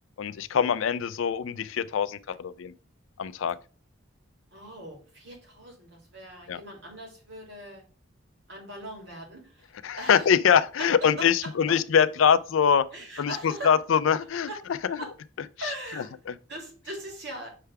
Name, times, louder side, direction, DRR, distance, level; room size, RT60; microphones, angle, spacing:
voice 1, 0.2-2.7 3.2-3.6 6.5-6.6 9.8-12.9 13.2-14.5 14.9-15.0 16.3-16.4, left 7 dB, 75° left, 0.4 m, -23 dB
voice 2, 4.5-7.8 8.5-10.3 10.8-11.8 12.9-13.8 14.5-14.6 15.0-15.1 15.6-16.2 16.5-17.5, right 1 dB, 55° right, 2.1 m, -40 dB
6.7 x 3.4 x 4.7 m
head